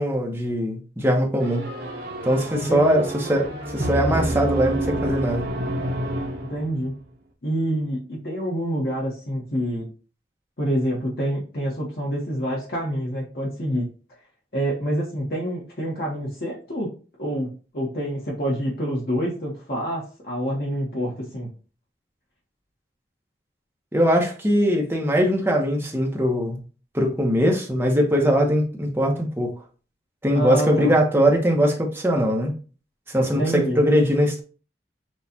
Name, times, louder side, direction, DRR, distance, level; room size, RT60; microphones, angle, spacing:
voice 1, 0.0-1.7 2.2-5.5 23.9-26.6 26.9-29.5 30.2-32.5 33.1-34.4, equal, 15° right, 0.9 m, -21 dB
sound 1, 1.4-7.0, right 1 dB, 60° right, 0.9 m, -28 dB
voice 2, 2.5-2.8 6.5-7.0 7.4-9.9 10.6-13.9 14.5-16.9 17.2-21.5 30.3-30.9 33.2-33.8, right 1 dB, 60° left, 1.1 m, -27 dB
6.2 x 2.4 x 2.7 m
head